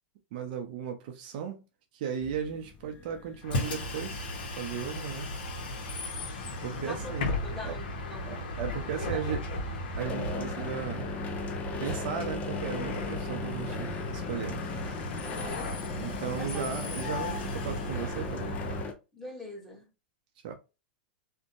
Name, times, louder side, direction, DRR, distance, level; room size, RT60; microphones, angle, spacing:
voice 1, 0.3-1.6 1.9-4.3 4.6-5.3 6.6-7.3 7.6-7.8 8.3-9.5 10.0-11.1 11.8-14.6 16.0-18.6 20.4-20.5, right 7 dB, 55° right, 0.5 m, -36 dB
sound 1, 2.2-18.9, left 5 dB, 25° left, 0.5 m, -40 dB
Bus, 3.4-18.8, left 1 dB, 65° left, 0.8 m, -36 dB
voice 2, 6.9-7.2 7.4-8.3 8.8-9.4 15.2-15.7 16.4-16.7 19.1-19.9, left 1 dB, 5° left, 1.1 m, -42 dB
2.6 x 2.1 x 2.5 m
hypercardioid pair, 110°, 6 cm